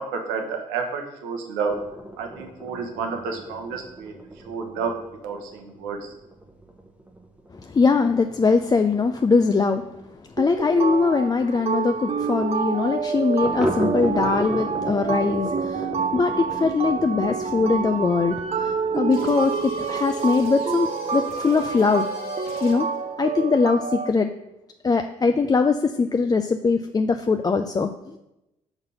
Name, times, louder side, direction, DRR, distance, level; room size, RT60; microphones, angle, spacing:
voice 1, 0.0-1.8 2.2-4.1 4.4-5.0 5.2-6.1, right 5 dB, 80° right, 3 dB, 0.9 m, -30 dB
sound 1, 1.7-10.9 11.2-11.3 11.6-11.7 12.1-12.2 13.4-20.1, right 1 dB, 10° right, 1.1 m, -35 dB
voice 2, 7.5-9.8 10.4-22.1 22.6-22.9 23.2-24.3 24.8-28.2, left 4 dB, 25° left, 7 dB, 0.4 m, -22 dB
sound 2, 10.4-24.1, right 6 dB, 40° right, 0.6 m, -28 dB
sound 3, 19.1-23.0, left 5 dB, 65° left, 1.3 m, -40 dB
5.7 x 3.9 x 5.4 m, 0.91 s
hypercardioid pair, 45°, 17 cm